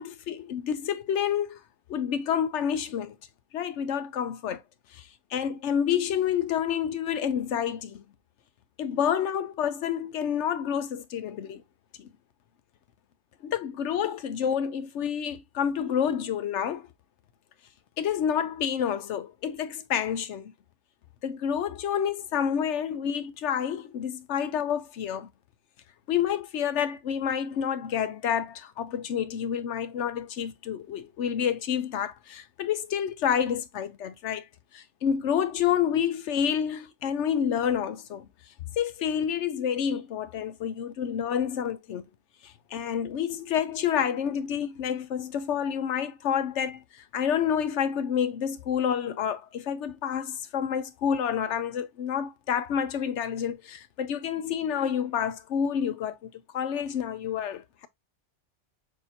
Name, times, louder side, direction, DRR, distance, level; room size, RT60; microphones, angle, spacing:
voice 1, 0.0-1.6 1.9-3.2 3.5-4.6 4.9-8.0 8.8-11.6 12.0-12.1 13.4-16.9 18.0-20.5 21.2-25.3 26.1-34.5 34.7-38.3 38.8-42.0 42.4-57.9, left 8 dB, 75° left, 1.0 m, -29 dB
6.5 x 2.7 x 2.7 m
omnidirectional pair, 1.2 m